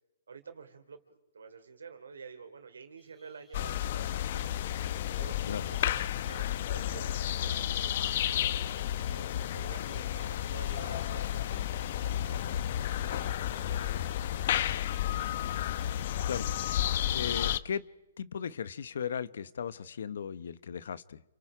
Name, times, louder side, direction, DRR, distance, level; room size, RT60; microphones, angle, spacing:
voice 1, 0.3-1.0 1.3-4.5 5.2-7.6 8.0-8.9 9.1-12.7 13.0-14.2, right 6 dB, 90° right, 8 dB, 3.2 m, -50 dB
sound 1, 3.0-16.9, left 1 dB, 5° left, 3.6 m, -61 dB
sound 2, 3.5-17.6, left 11 dB, 50° left, 0.8 m, -32 dB
voice 2, 16.2-16.8 17.1-17.9 18.2-21.2, left 7 dB, 70° left, 18 dB, 1.0 m, -37 dB
29.5 x 27.0 x 5.0 m, 1.0 s
hypercardioid pair, 150°, 0 cm